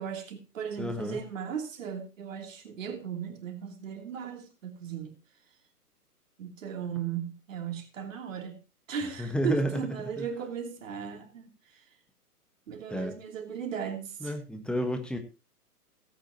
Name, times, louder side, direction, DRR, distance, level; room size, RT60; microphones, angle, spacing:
voice 1, 0.0-5.2 6.4-8.6 8.9-11.8 12.7-14.4, right 7 dB, 55° right, 3.1 m, -37 dB
voice 2, 0.8-1.2 9.2-9.8 10.2-10.3 12.9-13.1 14.2-15.2, equal, ahead, 1.2 m, -30 dB
18.0 x 8.8 x 2.9 m
figure-of-eight pair, 125°, 46 cm